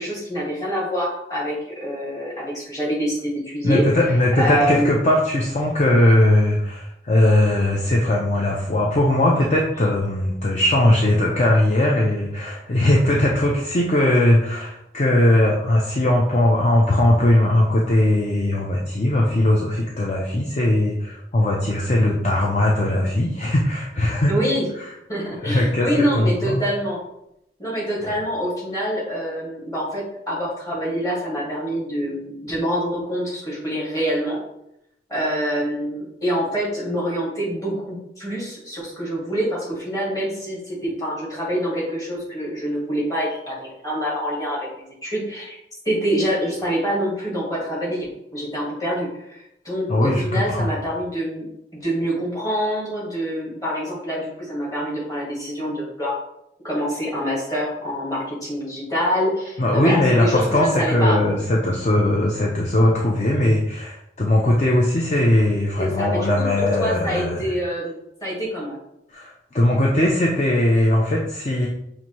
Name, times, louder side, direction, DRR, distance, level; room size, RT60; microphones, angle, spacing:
voice 1, 0.0-3.8 4.4-4.8 24.3-24.6 25.1-27.0 27.6-34.4 35.1-45.6 45.8-56.2 56.6-61.2 65.8-68.8, equal, 20° left, -6 dB, 1.6 m, -26 dB
voice 2, 3.6-24.3 24.8-24.9 25.4-26.6 49.9-50.7 59.6-67.4 69.1-71.7, left 1 dB, 40° left, -2 dB, 0.5 m, -19 dB
5.8 x 2.6 x 3.0 m, 0.81 s
head